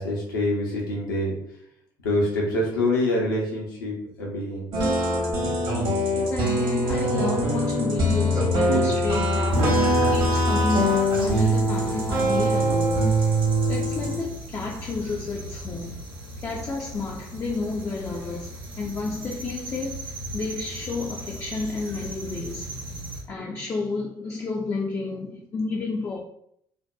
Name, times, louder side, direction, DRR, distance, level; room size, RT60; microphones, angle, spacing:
voice 1, 0.0-1.3 2.0-4.7, left 1 dB, 80° left, 0.7 m, -25 dB
sound 1, 4.7-14.2, equal, 50° right, 0.9 m, -22 dB
voice 2, 6.1-13.1 13.7-16.0 16.4-22.8 23.3-26.2, left 4 dB, 25° left, 0.3 m, -31 dB
sound 2, 9.5-23.2, right 1 dB, 85° right, 0.6 m, -38 dB
2.6 x 2.1 x 2.2 m
figure-of-eight pair, 55°, 11 cm